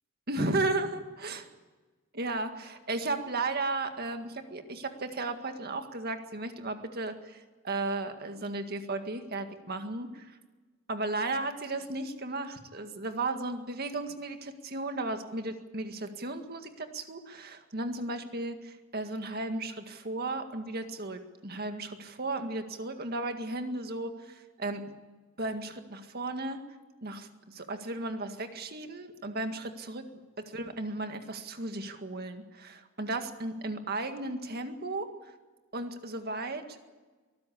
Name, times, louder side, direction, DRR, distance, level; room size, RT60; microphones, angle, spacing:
voice 1, 0.3-1.5 2.1-10.4 10.9-24.8 25.4-26.6 27.0-30.0 30.4-35.1 35.7-36.8, right 2 dB, 50° right, 7 dB, 1.9 m, -35 dB
23.0 x 14.0 x 8.6 m, 1.3 s
head